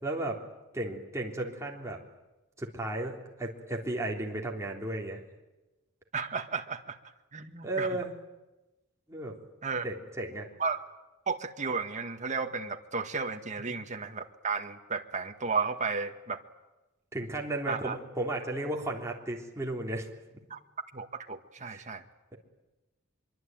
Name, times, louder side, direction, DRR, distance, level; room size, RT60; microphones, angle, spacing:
voice 1, 0.0-0.4 0.7-2.0 2.6-5.2 7.6-8.1 9.1-9.4 9.8-10.5 17.1-20.1 20.3-20.4 21.7-21.8, right 2 dB, 15° right, -1 dB, 3.5 m, -34 dB
voice 2, 6.1-7.0 7.3-8.0 9.6-9.9 10.6-10.9 11.3-16.4 17.7-18.0 20.5-20.6 20.9-22.0, right 4 dB, 35° right, 5 dB, 1.8 m, -33 dB
25.0 x 23.5 x 9.3 m, 1.1 s
head